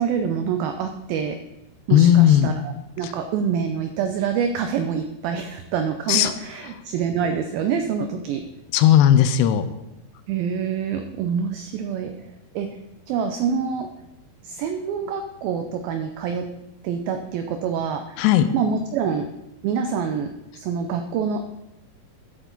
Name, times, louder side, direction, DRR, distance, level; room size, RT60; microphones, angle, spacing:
voice 1, 0.0-1.4 1.9-8.4 10.3-12.1 12.5-12.8 13.1-13.9 14.4-16.5 16.8-18.2 18.5-19.3 19.6-20.3 20.6-21.4, right 7 dB, 80° right, 6 dB, 2.2 m, -26 dB
voice 2, 1.9-2.5 3.0-3.1 6.1-6.3 8.7-9.7 18.2-18.5, left 10 dB, 85° left, 10 dB, 2.7 m, -16 dB
13.5 x 8.1 x 3.9 m, 0.92 s
omnidirectional pair, 4.8 m